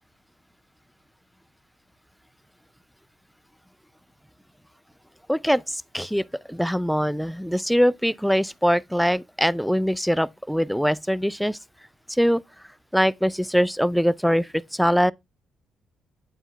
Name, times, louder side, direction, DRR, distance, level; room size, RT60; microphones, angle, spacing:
voice 1, 5.3-11.6 12.2-12.4 12.9-15.1, equal, ahead, 0.3 m, -22 dB
9.0 x 4.5 x 3.4 m
cardioid pair, 90°, 0 cm